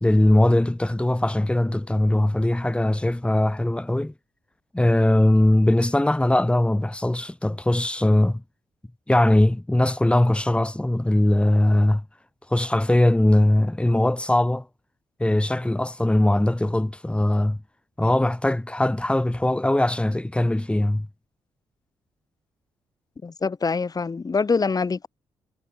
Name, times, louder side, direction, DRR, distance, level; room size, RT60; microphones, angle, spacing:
voice 1, 0.0-4.1 4.7-8.4 9.1-12.0 12.5-14.7 15.2-17.6 18.0-21.1, left 1 dB, 10° left, 2.3 m, -20 dB
voice 2, 23.2-25.1, left 4 dB, 30° left, 1.5 m, -24 dB
hypercardioid pair, 40°, 12 cm